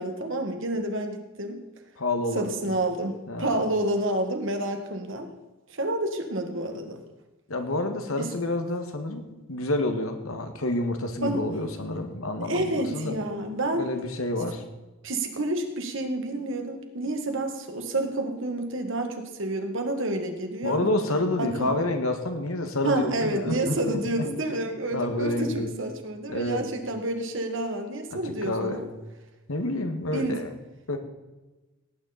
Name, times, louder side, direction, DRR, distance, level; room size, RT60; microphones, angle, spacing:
voice 1, 0.0-1.6 2.4-5.3 5.7-7.0 8.2-8.3 11.2-11.5 12.4-13.9 15.0-20.9 21.4-21.7 22.8-28.9 30.1-30.4, right 1 dB, 65° right, 5 dB, 1.9 m, -29 dB
voice 2, 2.0-2.5 3.3-3.6 7.5-9.2 9.5-13.2 13.7-14.6 20.6-24.0 24.9-25.7 26.3-26.7 28.1-28.8 29.5-30.5 30.9-31.0, left 2 dB, 85° left, 6 dB, 1.9 m, -28 dB
17.5 x 9.4 x 4.3 m, 1.1 s
head